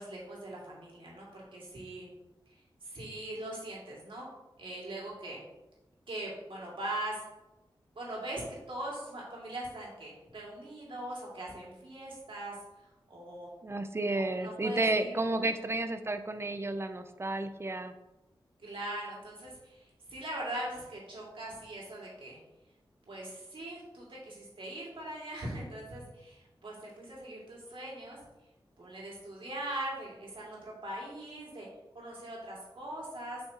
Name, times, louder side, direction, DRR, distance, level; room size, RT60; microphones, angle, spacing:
voice 1, 0.0-2.1 2.5-2.6 2.8-4.3 4.6-5.4 6.1-7.2 8.0-13.5 14.3-15.5 18.6-22.4 23.1-28.2 28.8-31.7 31.9-33.4, right 1 dB, 75° right, -4 dB, 2.3 m, -41 dB
voice 2, 13.6-17.9, right 2 dB, 30° right, 9 dB, 0.5 m, -32 dB
7.4 x 5.5 x 2.9 m, 1.0 s
wide cardioid pair, 75°, 9 cm